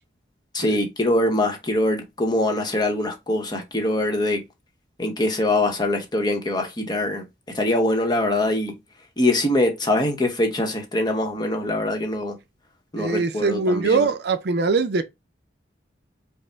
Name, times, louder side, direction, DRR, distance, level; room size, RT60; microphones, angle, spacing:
voice 1, 0.5-4.4 5.0-7.2 7.5-8.7 9.2-12.4 12.9-14.1, left 1 dB, 20° left, 0.8 m, -23 dB
voice 2, 13.0-15.0, right 4 dB, 60° right, 0.5 m, -22 dB
5.1 x 2.0 x 3.4 m
head